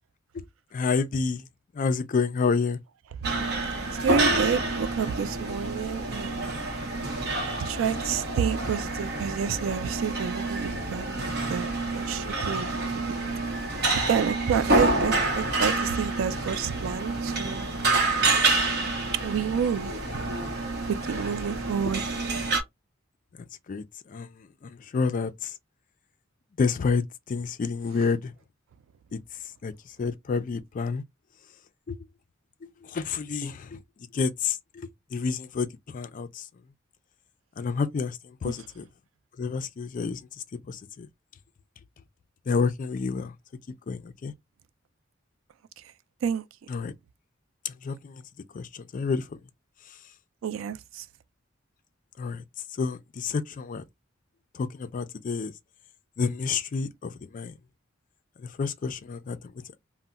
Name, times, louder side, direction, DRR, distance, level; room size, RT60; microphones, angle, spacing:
voice 1, 0.7-1.4 1.7-2.8 10.7-10.8 13.2-13.4 23.7-23.8 24.1-24.3 24.6-25.5 26.6-28.3 29.1-29.2 29.6-29.7 30.0-31.0 31.9-32.0 32.6-33.8 34.1-35.7 35.9-36.4 37.6-38.8 39.4-40.3 40.7-41.1 42.5-43.3 43.9-44.3 46.7-46.9 47.6-48.2 48.5-49.2 52.2-52.4 52.8-53.8 54.5-55.5 56.2-57.5 58.6-59.4, left 5 dB, 40° left, 0.4 m, -29 dB
sound 1, 3.2-22.6, right 2 dB, 55° right, 0.8 m, -28 dB
voice 2, 3.9-6.5 7.6-13.2 14.0-17.7 19.1-19.9 21.0-22.0 38.4-38.5 46.2-46.5 50.4-51.1, right 7 dB, 80° right, 0.3 m, -29 dB
2.2 x 2.1 x 3.8 m
head